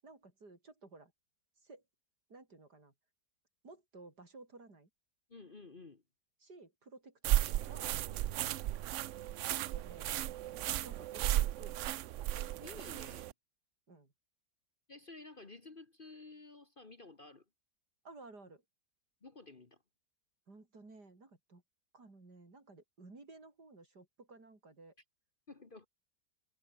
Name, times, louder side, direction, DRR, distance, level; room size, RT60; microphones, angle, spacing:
voice 1, 0.0-1.1 1.6-1.8 2.3-2.9 3.6-4.9 6.4-8.0 9.5-10.1 10.8-11.8 13.9-14.1 18.0-18.6 20.5-21.6 21.9-24.9, right 3 dB, 65° right, 5.3 m, -55 dB
voice 2, 5.3-6.0 8.1-8.2 8.5-8.6 12.3-13.3 14.9-17.4 19.2-19.8 25.5-25.9, left 3 dB, 30° left, 1.5 m, -53 dB
sound 1, 7.2-13.3, right 13 dB, 85° right, 0.6 m, -35 dB
omnidirectional pair, 1.9 m